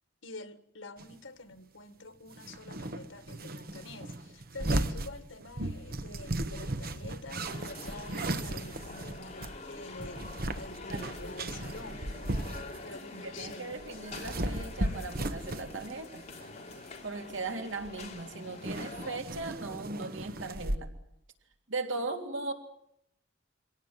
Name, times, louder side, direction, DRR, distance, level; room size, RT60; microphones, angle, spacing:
voice 1, 0.2-10.3 10.5-12.1 12.8-13.8 17.5-17.6, left 2 dB, 90° left, 1.8 m, -47 dB
sound 1, 1.0-1.1 2.3-13.0 13.4-16.0 16.3-16.6 17.5-17.6 17.8-18.2 18.5-20.8, right 1 dB, 50° right, 1.2 m, -36 dB
sound 2, 7.3-19.2, left 3 dB, 35° left, 3.6 m, -46 dB
voice 2, 10.9-11.3 13.2-16.2 17.0-20.9 21.7-22.5, right 3 dB, 85° right, 3.1 m, -38 dB
24.5 x 17.5 x 9.5 m
head